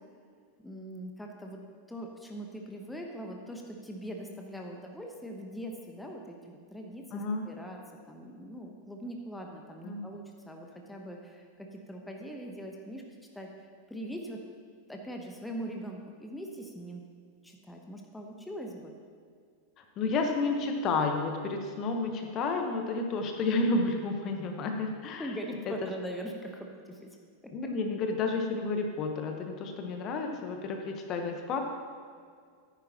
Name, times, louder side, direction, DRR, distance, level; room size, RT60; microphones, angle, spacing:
voice 1, 0.6-1.6 1.9-7.8 8.1-13.0 13.3-13.5 13.9-14.4 14.9-17.0 17.4-18.9 25.2-27.1 27.4-27.5, equal, 5° left, 1 dB, 1.1 m, -41 dB
voice 2, 7.1-7.5 9.8-10.0 20.0-25.3 25.8-25.9 27.5-31.6, left 3 dB, 35° left, 4 dB, 1.2 m, -31 dB
14.0 x 10.0 x 3.0 m, 2.1 s
figure-of-eight pair, 90°, 0 cm